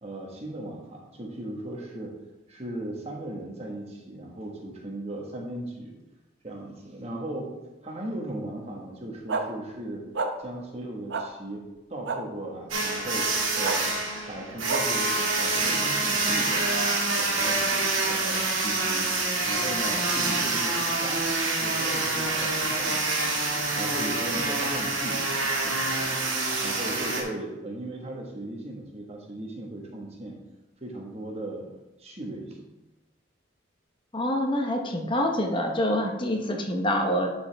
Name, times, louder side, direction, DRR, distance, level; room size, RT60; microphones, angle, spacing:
voice 1, 0.0-2.2 2.5-5.9 6.4-10.0 10.4-13.9 14.3-16.7 17.2-19.1 19.4-21.3 21.6-23.4 23.8-26.0 26.6-30.4 30.8-31.7 32.0-32.6 35.0-35.1, right 1 dB, 30° right, -1 dB, 1.4 m, -37 dB
sound 1, 9.3-9.4 10.1-10.3 11.1-11.2 12.1-12.2 13.6-13.8 14.7-14.8, right 4 dB, 65° right, 0.7 m, -27 dB
sound 2, 12.7-27.2, right 3 dB, 85° right, 1.8 m, -26 dB
voice 2, 34.1-37.3, left 1 dB, 25° left, 3 dB, 0.8 m, -26 dB
11.0 x 4.9 x 3.4 m, 1.0 s
head